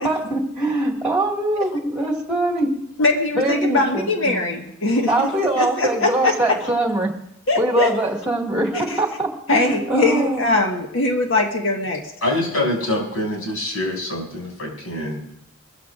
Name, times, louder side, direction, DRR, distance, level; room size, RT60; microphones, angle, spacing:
voice 1, 0.0-2.7 3.4-4.4 5.1-7.1 7.6-10.4, right 1 dB, 5° right, 0 dB, 2.0 m, -22 dB
voice 2, 3.0-6.7 7.5-8.0 8.7-9.0 9.5-12.1, left 2 dB, 65° left, 2 dB, 1.5 m, -21 dB
voice 3, 12.2-15.4, left 1 dB, 90° left, -2 dB, 6.6 m, -25 dB
21.5 x 15.0 x 2.5 m, 0.77 s
head